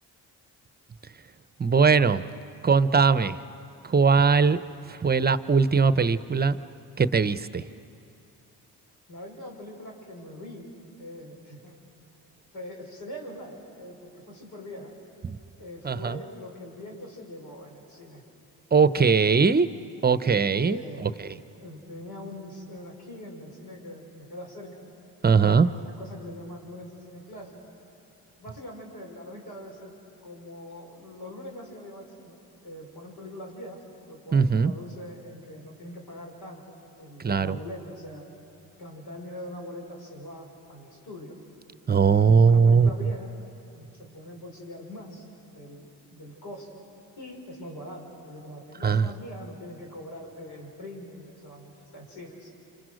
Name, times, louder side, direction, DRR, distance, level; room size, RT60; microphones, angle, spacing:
voice 1, 1.6-2.2 2.6-3.4 3.8-4.6 4.9-6.6 7.0-7.6 15.2-15.4 15.8-16.2 18.7-19.7 20.0-21.1 25.2-25.7 34.3-34.7 37.2-37.6 41.9-43.1 48.8-49.1, right 5 dB, 25° right, 14 dB, 0.8 m, -20 dB
voice 2, 9.1-10.7 11.0-11.8 12.5-14.9 15.6-18.2 20.6-21.1 21.6-24.9 25.5-27.6 28.4-29.9 30.2-38.3 38.8-41.4 42.0-43.3 43.7-46.8 47.2-52.5, left 1 dB, 75° left, 0 dB, 5.7 m, -42 dB
29.5 x 26.5 x 6.4 m, 2.7 s
supercardioid pair, 65°, 40 cm